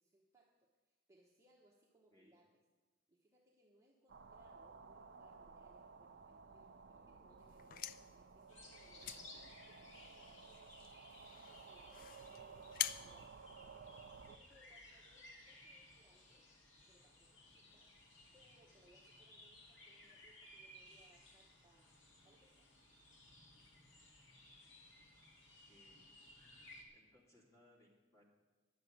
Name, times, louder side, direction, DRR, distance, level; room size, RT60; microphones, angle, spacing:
voice 1, 0.0-2.5 3.1-13.9 14.2-16.4 16.9-17.9 18.3-21.9 22.2-22.7, right 1 dB, 15° right, -2 dB, 1.1 m, -71 dB
sound 1, 4.1-14.4, right 5 dB, 60° right, 0.6 m, -57 dB
sound 2, 7.5-14.3, left 11 dB, 45° left, 0.4 m, -48 dB
sound 3, 8.5-26.8, left 1 dB, 65° left, 2.1 m, -60 dB
voice 2, 9.0-9.4 17.9-18.2 25.7-26.1 26.9-28.3, left 1 dB, 15° left, -3 dB, 2.6 m, -69 dB
10.5 x 6.8 x 8.6 m, 1.3 s
head